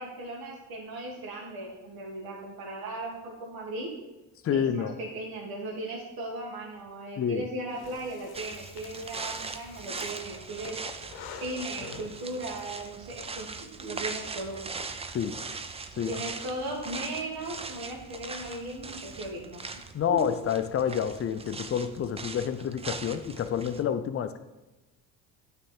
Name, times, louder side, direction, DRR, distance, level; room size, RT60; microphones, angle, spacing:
voice 1, 0.0-3.9 4.5-10.9 11.4-13.5 13.8-14.6 16.0-19.6 20.1-20.2, right 2 dB, 60° right, -2 dB, 1.7 m, -37 dB
voice 2, 4.4-4.9 7.2-7.5 15.1-15.4 16.0-16.1 19.9-24.4, left 8 dB, 35° left, 11 dB, 0.5 m, -28 dB
Breathing, 7.7-12.7, left 6 dB, 65° left, 0.9 m, -47 dB
sound 1, 8.3-23.8, right 4 dB, 15° right, 0.4 m, -40 dB
8.8 x 3.5 x 4.4 m, 1.1 s
supercardioid pair, 80°, 41 cm